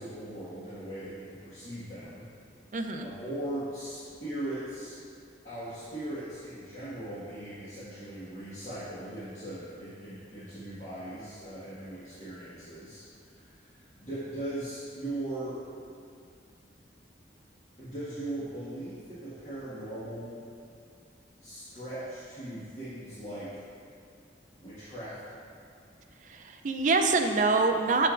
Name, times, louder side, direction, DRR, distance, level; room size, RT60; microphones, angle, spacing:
voice 1, 0.0-2.2 2.9-5.0 5.4-15.6 17.8-20.4 21.4-23.6 24.6-25.2, right 1 dB, 40° left, -13 dB, 1.6 m, -39 dB
voice 2, 2.7-3.1 26.3-28.1, right 3 dB, 45° right, 4 dB, 0.5 m, -25 dB
8.7 x 6.8 x 2.5 m, 2.3 s
head